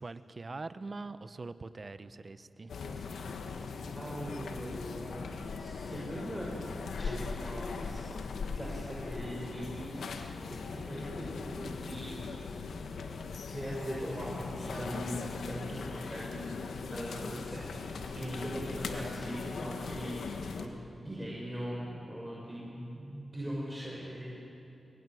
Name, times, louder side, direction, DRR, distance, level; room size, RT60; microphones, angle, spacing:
voice 1, 0.0-2.7, right 3 dB, 45° right, 12 dB, 1.2 m, -43 dB
sound 1, 2.7-20.7, left 4 dB, 90° left, 1.6 m, -40 dB
voice 2, 3.9-6.5 7.0-8.1 8.5-10.2 10.5-12.1 12.9-13.1 13.4-20.2 20.5-20.7 21.0-24.5, equal, 10° right, -5 dB, 6.7 m, -40 dB
26.5 x 22.0 x 9.4 m, 2.8 s
cardioid pair, 55°, 0 cm